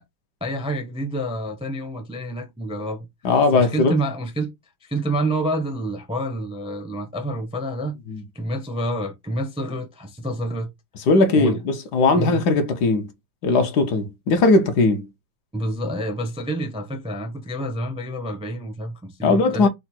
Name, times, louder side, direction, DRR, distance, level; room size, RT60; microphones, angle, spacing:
voice 1, 0.4-3.1 3.5-4.5 4.8-8.0 8.3-10.7 11.4-11.6 12.1-12.4 15.5-19.7, right 1 dB, 5° right, 0.5 m, -28 dB
voice 2, 3.2-3.9 8.1-8.2 11.1-13.1 13.4-15.1 19.2-19.7, left 3 dB, 70° left, 1.4 m, -19 dB
5.0 x 2.2 x 4.3 m
omnidirectional pair, 1.9 m